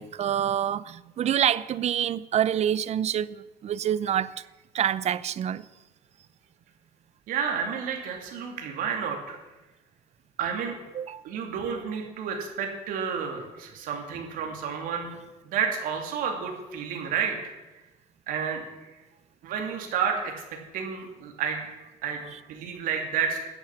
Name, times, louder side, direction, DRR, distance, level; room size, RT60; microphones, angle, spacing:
voice 1, 0.0-4.3 4.7-5.6 10.9-11.2, right 10 dB, 50° right, 18 dB, 0.6 m, -26 dB
voice 2, 7.3-9.4 10.4-10.8 11.2-15.2 15.4-17.5 18.3-18.9 19.4-20.4 20.7-23.4, right 7 dB, 80° right, 3 dB, 2.7 m, -31 dB
13.5 x 8.0 x 7.2 m, 1.1 s
cardioid pair, 95°, 14 cm